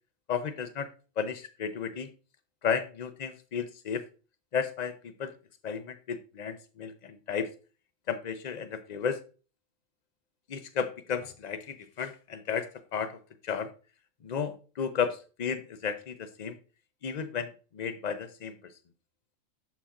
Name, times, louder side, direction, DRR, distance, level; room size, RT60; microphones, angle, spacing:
voice 1, 0.3-0.9 1.2-2.1 2.6-4.1 4.5-5.3 5.6-7.5 8.1-9.2 10.5-13.7 14.2-16.6 17.0-18.7, left 6 dB, 45° left, 10 dB, 0.5 m, -33 dB
11.5 x 4.2 x 2.4 m, 0.35 s
omnidirectional pair, 1.4 m